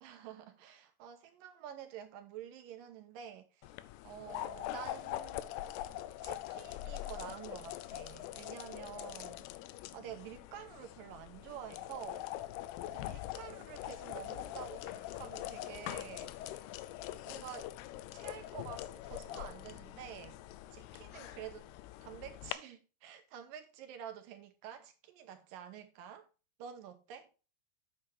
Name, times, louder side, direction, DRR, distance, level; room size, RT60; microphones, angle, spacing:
voice 1, 0.0-3.7 4.0-5.4 6.2-9.5 9.9-12.3 12.9-16.3 17.3-17.7 18.1-20.4 20.7-21.7 22.0-26.3 26.6-27.3, right 9 dB, 75° right, 2.3 m, -49 dB
sound 1, 3.6-22.5, left 14 dB, 85° left, 2.6 m, -43 dB
9.1 x 7.8 x 3.3 m
omnidirectional pair, 4.6 m